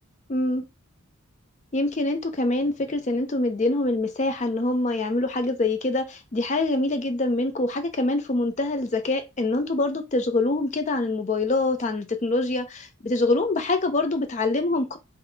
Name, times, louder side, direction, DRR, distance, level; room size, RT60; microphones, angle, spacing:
voice 1, 0.3-0.6 1.7-15.0, left 2 dB, 35° left, 0.4 m, -25 dB
3.9 x 2.0 x 4.4 m
head